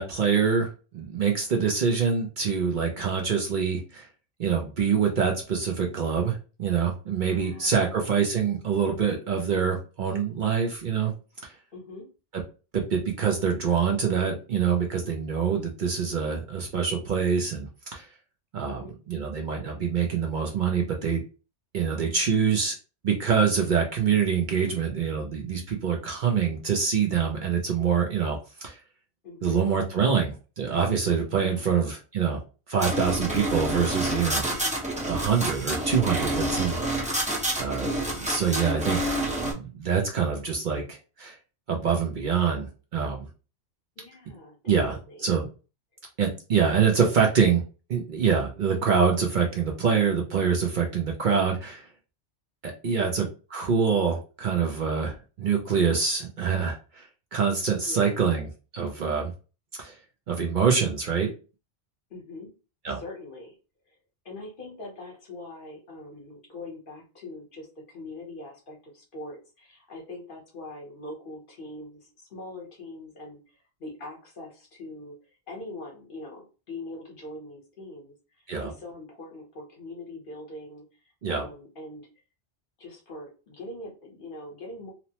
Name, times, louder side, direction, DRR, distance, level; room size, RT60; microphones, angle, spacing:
voice 1, 0.0-4.1 4.4-11.1 11.4-11.5 12.7-18.1 18.5-18.8 19.1-21.2 21.7-22.8 23.0-28.8 29.4-32.4 32.7-34.5 35.0-37.1 37.6-39.0 39.4-41.4 41.7-43.3 44.6-45.5 46.2-47.6 47.9-51.9 52.6-59.3 59.8-60.0 60.3-61.3 62.8-63.0 78.5-78.7 81.2-81.4, right 6 dB, 55° right, 1 dB, 0.6 m, -25 dB
voice 2, 3.0-3.4 7.3-8.0 11.7-12.1 18.6-18.9 29.2-29.6 31.3-31.7 34.5-34.8 44.0-45.3 52.8-53.1 57.8-58.1 62.1-62.5 62.9-63.6 63.9-64.0 64.2-75.1 75.5-78.1 78.6-80.9 81.3-82.1 82.8-84.9, left 2 dB, 55° left, 0 dB, 1.0 m, -42 dB
sound 1, 32.8-39.5, right 1 dB, 10° right, 0.4 m, -28 dB
2.9 x 2.0 x 2.8 m, 0.33 s
omnidirectional pair, 1.1 m